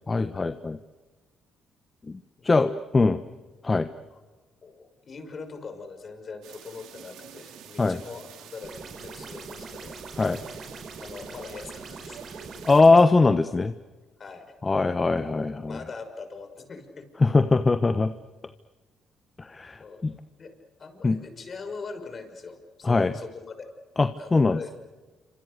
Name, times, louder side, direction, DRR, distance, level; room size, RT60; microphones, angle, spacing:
voice 1, 0.1-0.8 2.1-2.2 2.4-3.2 3.6-3.9 7.8-8.0 10.2-10.4 12.6-13.7 14.6-15.8 17.2-18.1 19.4-20.1 21.0-21.2 22.8-23.1 24.0-24.6, left 3 dB, 25° left, 11 dB, 1.2 m, -21 dB
voice 2, 4.6-10.0 11.0-12.4 14.2-14.5 15.6-17.1 19.8-20.0 20.3-20.5 20.8-23.7 24.2-24.8, left 4 dB, 45° left, 7 dB, 5.9 m, -42 dB
sound 1, 6.4-12.8, right 9 dB, 80° right, 2.6 m, -47 dB
sound 2, 8.6-13.0, right 3 dB, 45° right, 5.0 m, -42 dB
28.0 x 26.0 x 6.7 m, 1.3 s
supercardioid pair, 75°, 0 cm